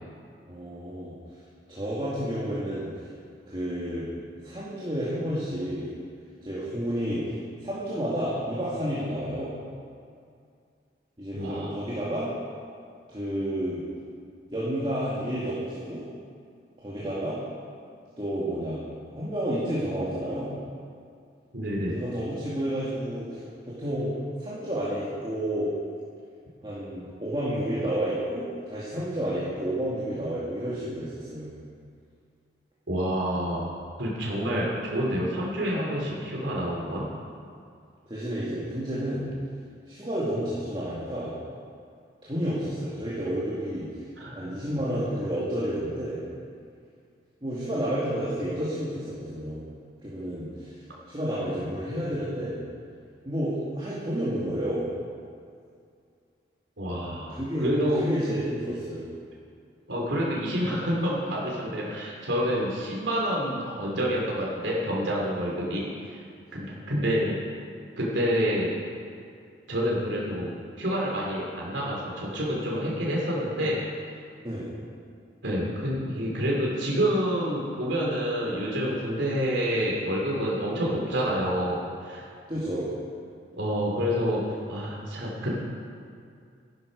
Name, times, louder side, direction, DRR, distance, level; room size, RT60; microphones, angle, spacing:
voice 1, 0.4-1.1 1.7-2.9 3.5-4.1 4.4-5.9 6.4-7.2 7.6-9.5 11.2-12.3 13.1-13.8 14.5-16.0 16.8-17.4 18.2-18.8 19.1-20.5 21.9-24.1 24.4-25.7 26.6-31.5 38.1-39.3 39.9-41.3 42.2-43.9 44.4-46.2 47.4-49.7 50.0-50.7 51.1-52.6 53.2-54.9 57.3-57.7 58.0-59.1 74.4-74.7 82.5-82.9, equal, 25° right, -9 dB, 2.3 m, -30 dB
voice 2, 11.3-11.8 21.5-22.0 32.9-33.7 34.0-37.1 44.2-44.4 56.8-58.1 59.9-66.2 66.5-67.4 68.0-68.8 69.7-73.8 75.4-82.3 83.6-84.4 84.7-85.6, equal, 85° right, -4 dB, 3.0 m, -28 dB
13.5 x 12.0 x 5.3 m, 2.3 s
head